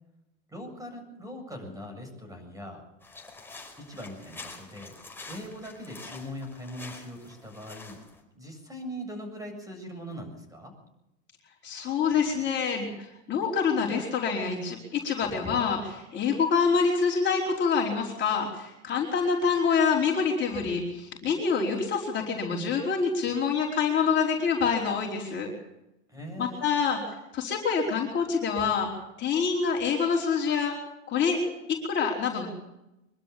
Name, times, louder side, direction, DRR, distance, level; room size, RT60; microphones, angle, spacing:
voice 1, 0.5-2.8 3.8-4.9 5.3-8.0 8.3-10.7 26.1-26.7, equal, 10° right, 5 dB, 7.6 m, -41 dB
sound 1, 3.0-8.2, left 3 dB, 5° left, 4.8 m, -46 dB
voice 2, 11.6-25.5 26.4-27.0 27.3-28.9 29.2-30.7 31.1-31.4 31.7-32.5, left 5 dB, 30° left, -1 dB, 4.7 m, -26 dB
24.0 x 12.5 x 8.6 m, 0.90 s
hypercardioid pair, 115°, 36 cm